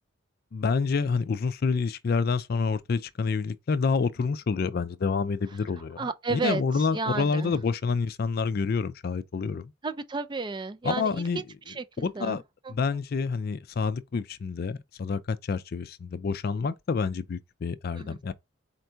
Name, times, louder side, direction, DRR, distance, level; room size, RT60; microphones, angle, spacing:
voice 1, 0.5-9.7 10.8-11.4 12.0-12.4 12.7-18.3, left 5 dB, 50° left, 0.4 m, -28 dB
voice 2, 6.0-6.6 6.9-7.5 9.8-12.4 12.6-12.7 17.9-18.2, right 4 dB, 25° right, 0.4 m, -32 dB
4.4 x 2.6 x 4.4 m
head